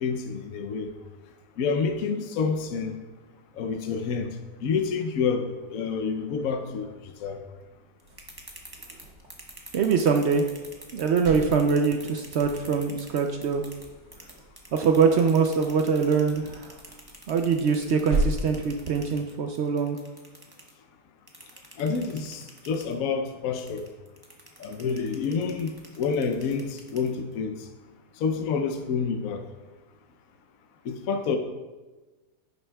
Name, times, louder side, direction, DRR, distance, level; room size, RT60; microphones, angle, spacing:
voice 1, 0.0-0.9 1.6-3.0 3.6-4.3 4.6-5.4 5.7-6.9 7.2-7.4 21.8-23.8 24.6-27.5 28.2-29.4 30.9-31.4, left 5 dB, 65° left, 5 dB, 1.0 m, -28 dB
sound 1, 8.0-13.9 14.1-20.7 21.3-22.9 23.6-27.3, right 2 dB, 15° right, 0.9 m, -46 dB
sound 2, 8.0-19.1, right 2 dB, 45° right, 1.7 m, -37 dB
voice 2, 9.7-10.4 10.9-13.7 14.7-16.7 17.3-20.0, right 5 dB, 90° right, 5 dB, 0.5 m, -23 dB
10.5 x 9.6 x 2.3 m, 1.2 s
omnidirectional pair, 1.8 m